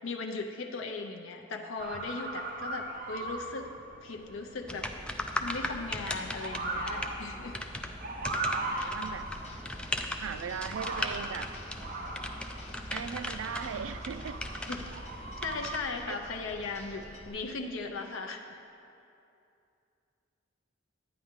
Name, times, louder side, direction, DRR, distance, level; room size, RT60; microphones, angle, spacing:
voice 1, 0.0-3.7 4.0-4.9 5.3-7.6 8.7-8.9 14.7-14.9 15.4-18.6, left 3 dB, 80° left, 3 dB, 0.6 m, -38 dB
Motor vehicle (road) / Siren, 1.8-17.4, right 2 dB, 45° right, 0.8 m, -40 dB
sound 1, 4.7-15.8, left 1 dB, 5° left, 0.4 m, -38 dB
voice 2, 8.3-9.3 10.2-11.5 12.9-14.4 16.1-16.2, right 7 dB, 80° right, 11 dB, 0.4 m, -38 dB
sound 2, 8.9-17.3, left 1 dB, 35° left, 1.1 m, -50 dB
10.5 x 9.5 x 3.7 m, 2.7 s
head